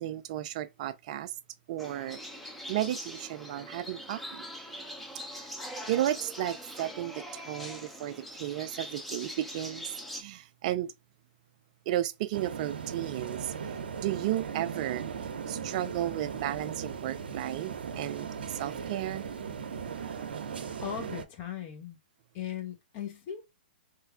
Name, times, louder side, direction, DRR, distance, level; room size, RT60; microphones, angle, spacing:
voice 1, 0.0-1.4 1.7-2.2 2.7-4.5 5.1-5.5 5.9-10.9 11.9-15.1 15.5-19.3, right 13 dB, 45° right, 0.4 m, -34 dB
sound 1, 1.8-10.2, equal, ahead, 0.7 m, -42 dB
sound 2, 12.3-21.3, right 7 dB, 75° right, 0.7 m, -38 dB
voice 2, 20.8-22.0 22.3-23.5, left 9 dB, 35° left, 0.9 m, -38 dB
3.2 x 2.3 x 3.4 m
hypercardioid pair, 125°, 6 cm